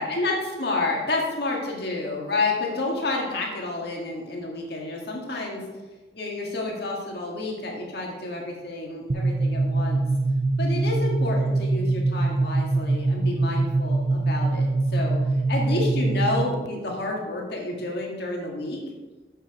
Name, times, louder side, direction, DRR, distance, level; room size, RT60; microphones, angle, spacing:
voice 1, 0.0-5.6 6.1-10.0 10.6-15.2 15.5-18.8, left 2 dB, 60° left, -1 dB, 1.9 m, -29 dB
sound 1, 9.1-16.7, right 2 dB, 40° right, 0.5 m, -23 dB
7.4 x 6.6 x 4.9 m, 1.2 s
head